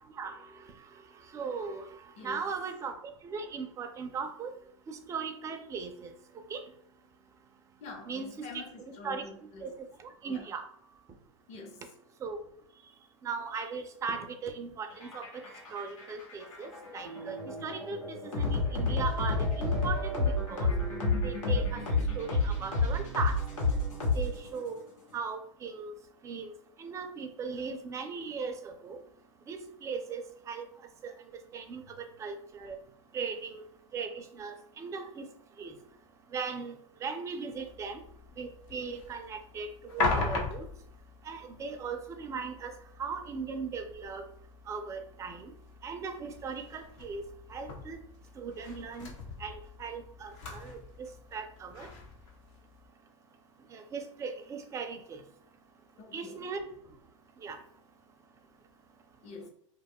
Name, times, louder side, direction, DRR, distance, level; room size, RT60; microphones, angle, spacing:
voice 1, 1.3-1.9 2.2-2.9 3.3-4.5 4.9-6.1 6.5-6.6 8.1-8.5 8.9-9.2 9.6-9.7 10.2-10.6 12.2-12.4 13.2-15.3 15.7-17.4 17.6-20.7 21.2-21.8 22.2-23.3 24.1-24.8 25.1-25.9 26.2-26.5 26.8-29.0 29.5-30.6 31.0-31.1 31.5-32.8 33.1-33.6 33.9-35.2 35.6-35.7 36.3-38.0 38.4-39.7 39.9-40.6 41.3-42.7 43.0-44.2 44.7-45.5 45.8-47.2 47.5-48.0 48.4-49.1 49.4-51.9 53.7-55.2 56.1-56.6 57.4-57.6, right 5 dB, 20° right, 0.4 m, -38 dB
voice 2, 2.2-2.5 7.8-9.7 10.3-10.5 11.5-11.8 18.4-18.5 56.0-56.5 59.2-59.5, left 3 dB, 40° left, 0.7 m, -46 dB
sound 1, 14.9-24.7, left 3 dB, 85° left, 1.1 m, -30 dB
sound 2, 17.0-17.9 19.0-24.0, right 7 dB, 75° right, 0.6 m, -43 dB
sound 3, 37.5-52.9, left 3 dB, 70° left, 0.8 m, -40 dB
2.2 x 2.1 x 3.5 m
hypercardioid pair, 105°, 17 cm